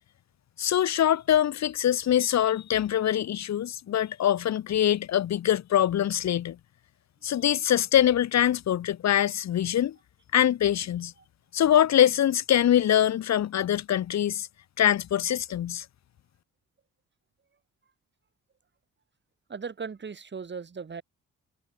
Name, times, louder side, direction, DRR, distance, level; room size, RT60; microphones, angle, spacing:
voice 1, 0.6-6.6 7.2-9.9 10.3-11.1 11.5-14.5 14.8-15.8, left 11 dB, 60° left, 1.5 m, -23 dB
voice 2, 19.5-21.0, right 5 dB, 35° right, 5.6 m, -37 dB
cardioid pair, 90°, 30 cm